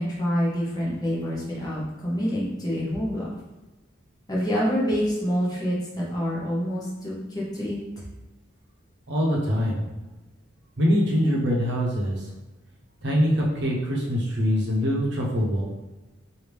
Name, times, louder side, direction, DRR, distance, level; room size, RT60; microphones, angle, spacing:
voice 1, 0.0-3.3 4.3-7.8, equal, 20° left, -6 dB, 0.9 m, -27 dB
voice 2, 9.1-9.8 10.8-12.3 13.0-15.6, equal, 60° right, -3 dB, 0.8 m, -23 dB
3.3 x 2.6 x 3.3 m, 1.1 s
head